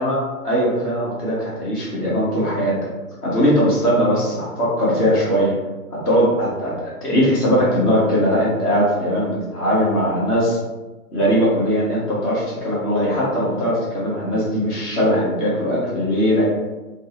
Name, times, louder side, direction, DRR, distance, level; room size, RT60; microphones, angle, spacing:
voice 1, 0.0-2.9 3.2-5.5 5.9-10.6 11.1-16.6, equal, ahead, -22 dB, 0.5 m, -20 dB
2.9 x 2.3 x 3.8 m, 1.1 s
hypercardioid pair, 160°, 44 cm